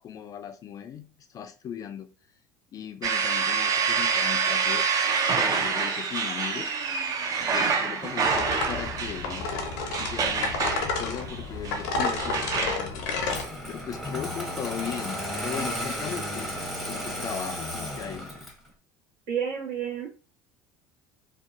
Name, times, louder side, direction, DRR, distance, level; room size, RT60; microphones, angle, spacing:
voice 1, 0.0-2.1 2.7-4.9 5.3-6.7 7.4-9.7 10.0-10.6 10.9-13.1 13.7-16.5 16.8-18.3, left 8 dB, 40° left, 9 dB, 0.4 m, -37 dB
sound 1, 3.0-12.8, right 5 dB, 40° right, 0.5 m, -27 dB
sound 2, 8.2-13.4, left 3 dB, 85° left, 0.6 m, -30 dB
Engine starting, 13.3-18.7, equal, ahead, 0.7 m, -33 dB
voice 2, 19.3-20.1, right 8 dB, 70° right, -2 dB, 1.2 m, -30 dB
2.7 x 2.2 x 2.4 m, 0.33 s
supercardioid pair, 95°, 9 cm